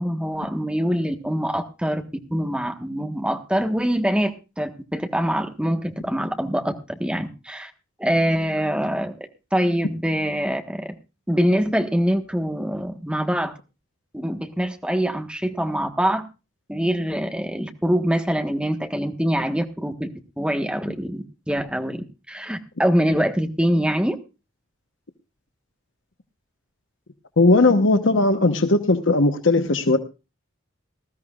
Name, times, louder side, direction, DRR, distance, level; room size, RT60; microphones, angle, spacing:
voice 1, 0.0-2.0 2.3-4.3 4.6-7.7 8.0-10.9 11.3-13.5 14.1-16.2 16.7-20.1 20.4-24.2, equal, 5° right, 6 dB, 1.4 m, -24 dB
voice 2, 27.4-30.0, left 2 dB, 70° left, 7 dB, 1.1 m, -18 dB
19.5 x 14.0 x 2.4 m, 0.29 s
head